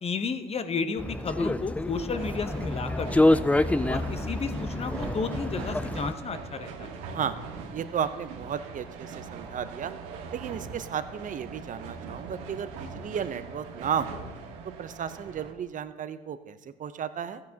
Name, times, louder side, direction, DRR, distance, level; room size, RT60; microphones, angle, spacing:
voice 1, 0.0-3.4 3.9-7.0, left 4 dB, 35° left, 10 dB, 0.9 m, -33 dB
sound 1, 1.0-6.1, left 1 dB, 5° left, 0.4 m, -27 dB
sound 2, 2.1-15.5, right 5 dB, 85° right, 1.3 m, -41 dB
voice 2, 7.7-9.9 10.3-14.3 14.8-17.4, right 8 dB, 45° right, 12 dB, 0.7 m, -34 dB
14.5 x 9.5 x 2.9 m, 1.2 s
supercardioid pair, 75°, 18 cm